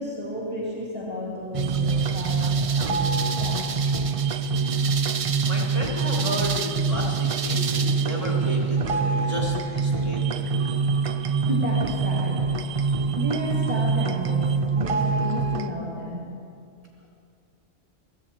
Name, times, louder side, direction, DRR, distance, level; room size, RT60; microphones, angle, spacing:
voice 1, 0.0-3.8 11.5-12.5 13.1-16.3, equal, 10° right, -5 dB, 2.1 m, -32 dB
sound 1, 1.5-15.7, right 5 dB, 65° right, 0.3 m, -24 dB
voice 2, 5.4-10.5, equal, 30° right, -4 dB, 2.8 m, -33 dB
16.0 x 15.0 x 4.4 m, 2.4 s
omnidirectional pair, 1.3 m